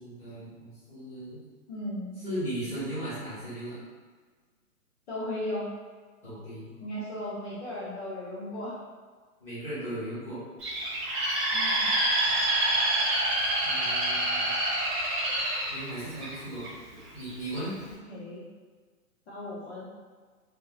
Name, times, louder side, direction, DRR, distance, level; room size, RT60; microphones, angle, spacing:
voice 1, 0.0-1.4 2.2-3.8 6.2-6.7 9.4-10.4 13.6-14.5 15.7-16.7 17.1-17.7, right 1 dB, 5° left, -15 dB, 1.3 m, -37 dB
voice 2, 1.7-2.2 5.1-5.7 6.8-8.7 11.5-11.9 18.1-18.4 19.3-19.9, left 1 dB, 45° left, -7 dB, 0.8 m, -36 dB
Bird, 10.6-16.7 17.2-17.6, right 1 dB, 20° right, 0.9 m, -27 dB
3.5 x 2.9 x 2.4 m, 1.5 s
hypercardioid pair, 145°, 45 cm